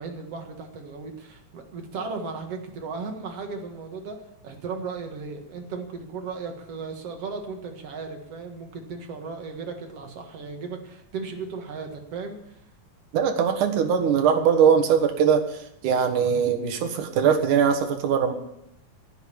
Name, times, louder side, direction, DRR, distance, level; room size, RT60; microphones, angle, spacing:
voice 1, 0.0-4.2 4.4-12.5, right 4 dB, 55° right, 4 dB, 2.6 m, -36 dB
voice 2, 13.1-15.4 15.8-18.3, right 7 dB, 80° right, 6 dB, 3.0 m, -21 dB
15.5 x 7.4 x 8.7 m, 0.81 s
omnidirectional pair, 3.5 m